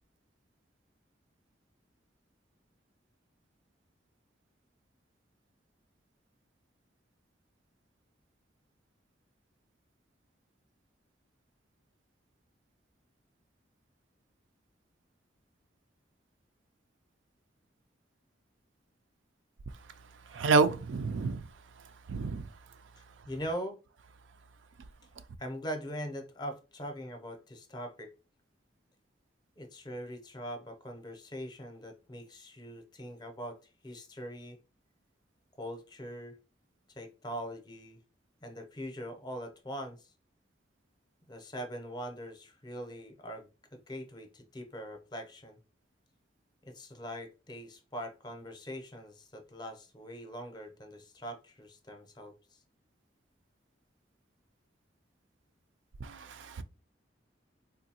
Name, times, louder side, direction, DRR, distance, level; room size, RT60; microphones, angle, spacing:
voice 1, 20.3-21.4 22.1-22.5 56.0-56.6, right 4 dB, 80° right, 0.4 m, -28 dB
voice 2, 23.0-23.8 25.4-28.1 29.6-33.6 33.8-34.6 35.6-36.4 36.9-38.0 38.4-40.1 41.3-45.6 46.6-52.6, equal, 25° left, 0.6 m, -42 dB
3.7 x 2.7 x 2.8 m
head